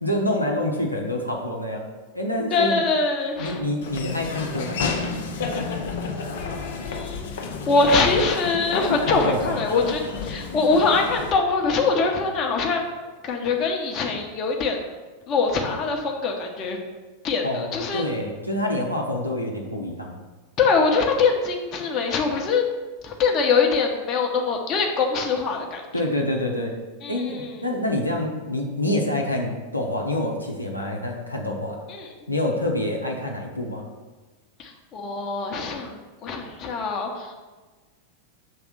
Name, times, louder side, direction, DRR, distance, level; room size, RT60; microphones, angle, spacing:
voice 1, 0.0-1.9 2.1-2.8 3.4-5.1 8.9-9.6 17.4-20.2 25.9-26.7 27.1-31.8 32.3-33.9, left 1 dB, 90° left, -1 dB, 0.8 m, -27 dB
voice 2, 2.5-3.6 6.3-12.9 13.2-14.8 15.3-16.8 17.2-18.0 20.6-22.6 23.0-25.8 27.0-27.6 31.9-32.1 34.6-37.3, left 4 dB, 30° left, 1 dB, 1.0 m, -23 dB
Laughter / Walk footsteps, 3.8-11.3, left 4 dB, 60° left, 0.7 m, -31 dB
6.4 x 3.4 x 5.9 m, 1.3 s
figure-of-eight pair, 90°, 0 cm